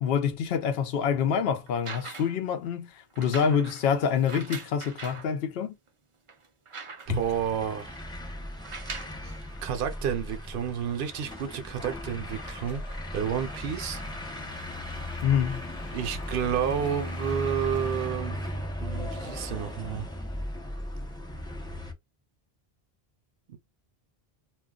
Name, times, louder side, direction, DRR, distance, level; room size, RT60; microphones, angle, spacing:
voice 1, 0.0-5.7 7.1-7.2 15.2-15.7, left 7 dB, 75° left, 0.8 m, -26 dB
sound 1, 1.7-2.5 3.1-5.3 5.9-6.0 6.3-7.3 8.5-9.2 10.2-10.3, right 4 dB, 40° right, 0.5 m, -42 dB
sound 2, 7.1-21.9, left 1 dB, 5° left, 0.5 m, -37 dB
voice 2, 7.1-8.0 9.2-12.8 13.1-14.0 15.9-18.5 18.8-20.1 23.5-23.6, right 8 dB, 70° right, 0.7 m, -31 dB
sound 3, 8.6-8.9 9.3-18.1, left 2 dB, 35° left, 0.9 m, -50 dB
2.3 x 2.2 x 3.6 m
omnidirectional pair, 1.0 m